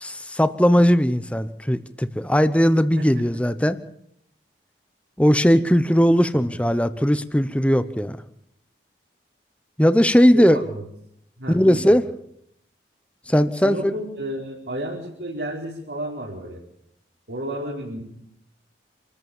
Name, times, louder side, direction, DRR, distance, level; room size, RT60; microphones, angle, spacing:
voice 1, 0.0-3.8 5.2-8.2 9.8-10.6 11.5-12.0 13.3-13.9, equal, 5° left, 12 dB, 0.9 m, -18 dB
voice 2, 6.3-6.6 10.3-10.8 11.4-12.0 13.6-16.6 17.3-18.0, right 1 dB, 85° right, -4 dB, 4.8 m, -32 dB
27.0 x 14.0 x 7.3 m, 0.73 s
head